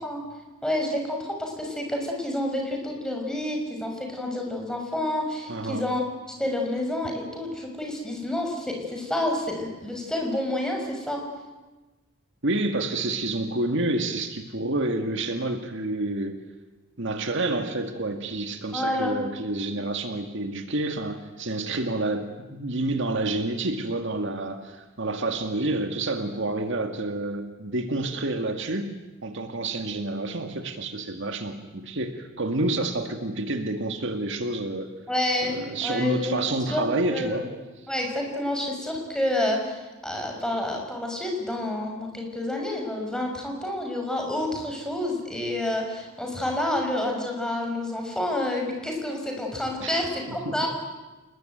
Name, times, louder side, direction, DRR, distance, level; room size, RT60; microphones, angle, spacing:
voice 1, 0.6-6.0 6.4-11.2 18.7-19.2 19.7-19.8 35.1-36.3 36.7-36.8 37.1-37.4 37.9-50.7, left 1 dB, 5° left, 1 dB, 5.9 m, -29 dB
voice 2, 5.5-5.9 12.4-16.4 17.0-34.9 35.4-37.5 49.8-50.6, right 2 dB, 60° right, 6 dB, 2.0 m, -29 dB
29.0 x 20.5 x 9.3 m, 1.2 s
head